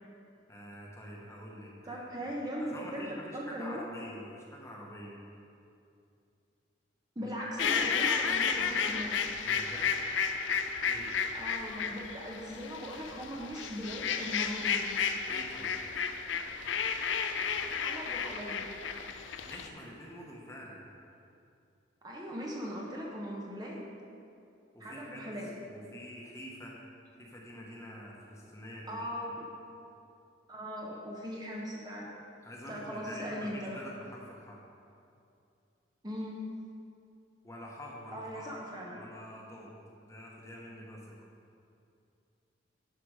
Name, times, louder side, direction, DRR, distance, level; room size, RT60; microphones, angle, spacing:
voice 1, 0.5-2.3 2.7-5.2 7.2-7.6 9.4-10.0 10.8-11.1 15.3-15.7 19.4-20.8 24.7-25.3 25.7-26.8 27.1-29.3 32.4-34.6 37.4-38.5 38.9-39.8 40.0-41.3, equal, 15° left, -2 dB, 1.1 m, -46 dB
voice 2, 1.9-3.8 7.2-9.2 11.3-14.9 17.8-18.7 22.0-23.9 24.8-25.5 28.9-29.5 30.5-32.1 32.7-33.8 36.0-36.4 38.1-39.0, equal, 20° right, -3 dB, 0.8 m, -39 dB
sound 1, 7.6-19.7, left 6 dB, 75° left, 0.5 m, -32 dB
11.5 x 5.0 x 4.8 m, 2.6 s
head